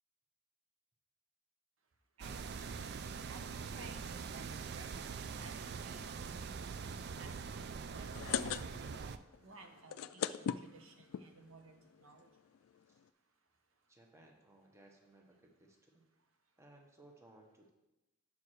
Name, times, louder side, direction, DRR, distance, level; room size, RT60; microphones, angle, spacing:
sound 1, 2.2-9.2, right 5 dB, 50° right, 0.4 m, -43 dB
voice 1, 2.2-2.9 3.3-6.2 6.8-9.1 9.4-12.3, right 3 dB, 70° right, 4 dB, 1.0 m, -57 dB
sound 2, 8.0-9.1 9.3-9.4 9.8-11.3 11.9-12.0 12.3-12.4 12.5-12.8, left 9 dB, 85° left, 0.3 m, -37 dB
voice 2, 13.9-16.0 16.6-17.7, right 2 dB, 15° right, 1 dB, 0.9 m, -62 dB
7.4 x 4.8 x 6.1 m, 0.98 s
head